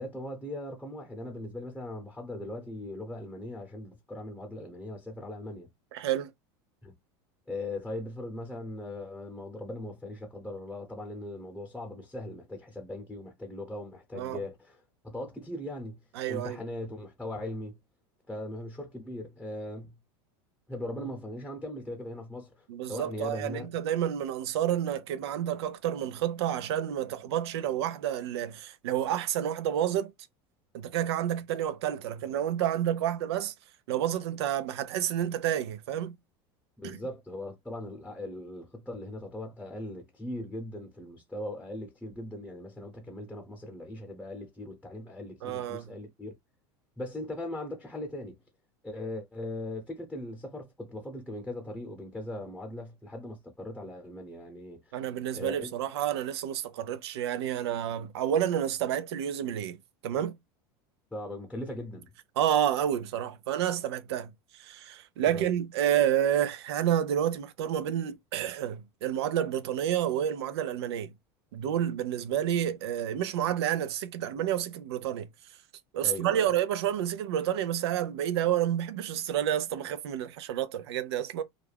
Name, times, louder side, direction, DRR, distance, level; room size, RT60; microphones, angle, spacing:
voice 1, 0.0-5.7 6.8-6.9 7.5-16.0 16.3-17.8 18.3-20.0 20.7-23.7 36.8-46.3 47.0-48.4 48.8-55.0 55.3-55.7 61.1-62.1 65.2-65.5 76.0-76.5, left 1 dB, 5° left, 0.8 m, -39 dB
voice 2, 5.9-6.3 14.1-14.4 16.2-16.6 22.7-30.1 30.7-33.5 33.9-36.2 36.8-37.0 45.4-45.9 54.9-60.4 62.4-71.1 71.5-75.3 75.9-81.4, right 10 dB, 90° right, 0.4 m, -29 dB
2.4 x 2.1 x 3.3 m
supercardioid pair, 125°, 13 cm